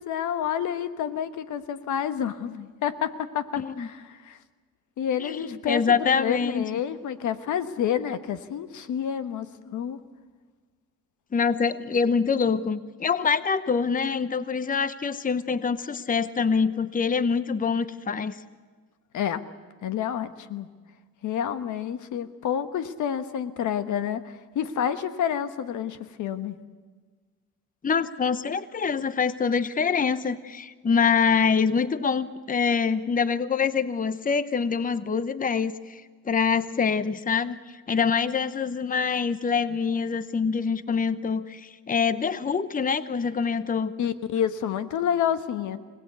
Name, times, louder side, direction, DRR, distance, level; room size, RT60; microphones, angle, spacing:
voice 1, 0.0-4.4 5.0-10.0 19.1-19.4 19.8-20.7 21.2-26.5 44.0-45.8, left 9 dB, 75° left, 11 dB, 1.4 m, -29 dB
voice 2, 3.6-3.9 5.2-6.6 11.3-18.4 27.8-43.9, left 6 dB, 25° left, 14 dB, 0.9 m, -25 dB
25.5 x 19.0 x 8.3 m, 1.5 s
cardioid pair, 90°, 30 cm